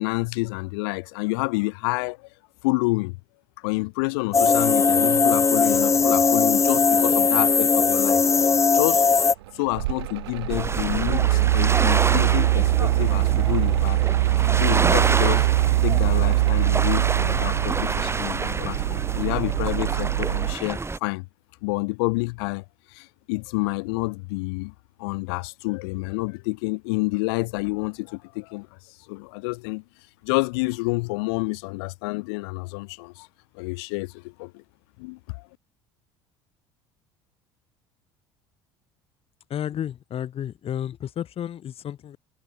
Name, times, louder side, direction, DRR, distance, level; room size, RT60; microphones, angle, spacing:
voice 1, 0.0-2.3 2.6-3.2 3.6-8.2 8.7-9.2 9.5-14.0 14.4-15.5 15.8-21.3 21.6-22.6 22.9-24.7 25.0-29.8 30.2-33.3 33.5-34.6 35.0-35.5, left 28 dB, 75° left, 2.9 m, -28 dB
sound 1, 4.3-9.3, left 5 dB, 20° left, 0.8 m, -19 dB
Mechanical fan, 9.3-20.6, right 17 dB, 80° right, 1.7 m, -22 dB
sound 2, 10.5-21.0, right 3 dB, 20° right, 3.9 m, -28 dB
voice 2, 39.5-42.2, left 10 dB, 45° left, 2.7 m, -32 dB
hypercardioid pair, 65°, 13 cm